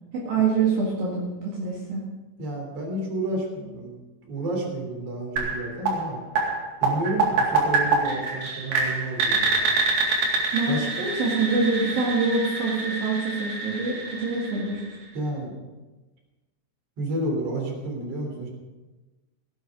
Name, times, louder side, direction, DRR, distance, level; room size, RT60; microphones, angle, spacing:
voice 1, 0.1-2.0 10.5-14.8, right 4 dB, 60° right, -4 dB, 3.5 m, -25 dB
voice 2, 2.4-4.0 4.3-6.2 6.8-9.5 10.7-10.9 15.1-15.6 17.0-18.5, right 1 dB, 40° right, 1 dB, 3.9 m, -30 dB
sound 1, 5.4-15.2, right 3 dB, 80° right, 4.5 m, -26 dB
17.0 x 9.4 x 5.2 m, 1.2 s
omnidirectional pair, 4.9 m